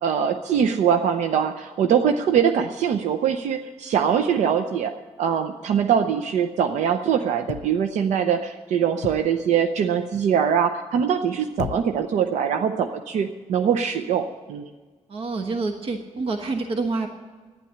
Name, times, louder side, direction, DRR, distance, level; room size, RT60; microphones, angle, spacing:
voice 1, 0.0-4.9 5.2-14.6, right 7 dB, 85° right, 7 dB, 0.6 m, -22 dB
sound 1, 7.5-8.0 9.0-9.5 11.6-12.2 13.0-13.1, left 10 dB, 80° left, 0.5 m, -35 dB
voice 2, 15.1-17.1, right 3 dB, 55° right, 5 dB, 1.1 m, -27 dB
11.5 x 9.8 x 8.6 m, 1.4 s
cardioid pair, 140°, 12 cm